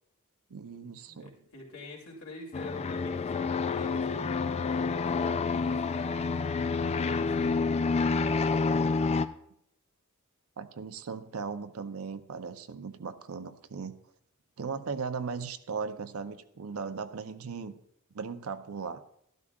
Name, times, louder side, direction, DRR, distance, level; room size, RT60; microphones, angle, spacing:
voice 1, 0.5-1.3 10.6-13.9 14.6-17.8 18.1-19.0, right 5 dB, 75° right, 10 dB, 0.6 m, -37 dB
voice 2, 1.1-7.8, left 2 dB, 65° left, -1 dB, 2.7 m, -48 dB
sound 1, 2.5-9.3, left 4 dB, 30° left, 0.3 m, -28 dB
12.5 x 12.0 x 2.4 m, 0.73 s
head